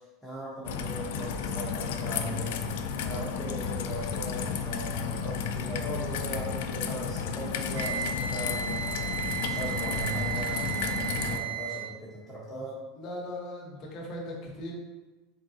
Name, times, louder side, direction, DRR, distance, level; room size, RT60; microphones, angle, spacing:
voice 1, 0.2-2.7 3.0-9.0 9.5-12.8, right 1 dB, ahead, -10 dB, 0.8 m, -39 dB
Raindrop / Trickle dribble, 0.6-11.4, left 6 dB, 75° left, 0.3 m, -32 dB
Wind instrument woodwind instrument, 7.7-11.9, right 8 dB, 80° right, 0.7 m, -34 dB
voice 2, 13.0-14.7, left 1 dB, 30° left, -3 dB, 0.9 m, -38 dB
3.7 x 3.6 x 2.7 m, 1.1 s
supercardioid pair, 165°, 0 cm